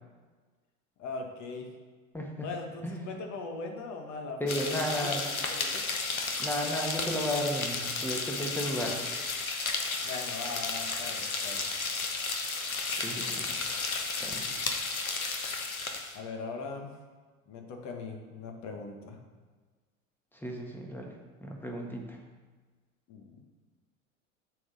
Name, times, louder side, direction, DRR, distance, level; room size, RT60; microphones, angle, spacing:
voice 1, 1.0-1.7 2.4-4.4 4.6-5.8 10.0-11.7 16.1-16.9 17.5-19.2 23.1-23.4, left 4 dB, 45° left, 3 dB, 1.5 m, -40 dB
voice 2, 2.1-2.5 2.8-3.2 4.4-5.2 6.4-9.0 13.0-13.9 14.2-14.5 20.3-21.1 21.4-22.2, equal, 5° left, 1 dB, 1.4 m, -34 dB
sound 1, 4.5-16.2, left 4 dB, 85° left, 0.9 m, -33 dB
7.6 x 4.0 x 6.5 m, 1.4 s
figure-of-eight pair, 75°, 41 cm